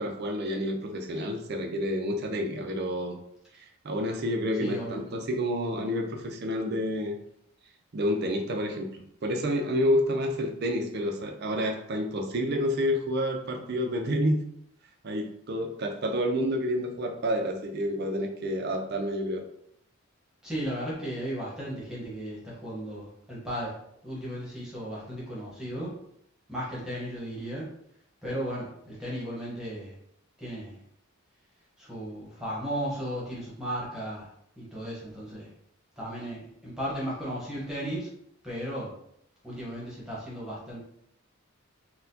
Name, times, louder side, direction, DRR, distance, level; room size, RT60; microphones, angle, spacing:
voice 1, 0.0-3.2 3.5-7.2 7.9-14.4 15.0-19.4, equal, 50° right, 4 dB, 0.5 m, -29 dB
voice 2, 4.6-5.0 20.4-23.7 24.0-25.9 26.5-27.7 28.2-29.9 30.4-30.8 31.8-34.3 34.6-35.5 36.0-38.1 38.4-38.9 39.4-40.8, equal, 5° right, -7 dB, 1.0 m, -35 dB
4.1 x 2.2 x 2.7 m, 0.73 s
head